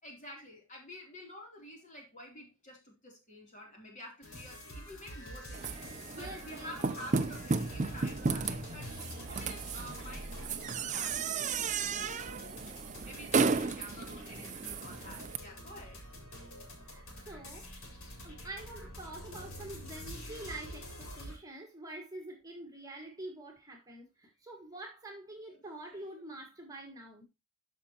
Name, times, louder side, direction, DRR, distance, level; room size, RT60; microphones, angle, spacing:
voice 1, 0.0-5.7 6.1-12.7 13.0-16.0 25.5-26.0, left 1 dB, 35° left, 3.1 m, -50 dB
sound 1, 4.2-21.4, equal, 75° left, 4.0 m, -47 dB
sound 2, 5.5-15.4, right 4 dB, 35° right, 0.5 m, -34 dB
voice 2, 6.1-6.8 9.2-9.5 16.7-17.7 18.2-27.2, right 2 dB, 15° right, 1.6 m, -46 dB
13.0 x 5.4 x 2.9 m
head